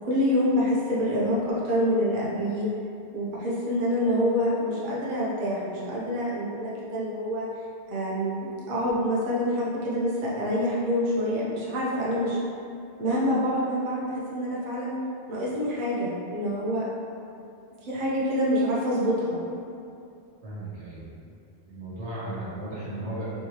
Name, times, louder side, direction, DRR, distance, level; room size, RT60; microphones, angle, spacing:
voice 1, 0.0-2.7 3.1-7.5 7.9-12.4 13.0-14.9 15.3-16.9 17.8-19.4, equal, 50° right, -7 dB, 0.8 m, -26 dB
voice 2, 20.4-21.1 21.7-23.3, right 1 dB, 75° right, -9 dB, 1.3 m, -35 dB
3.5 x 3.0 x 2.8 m, 2.6 s
omnidirectional pair, 1.2 m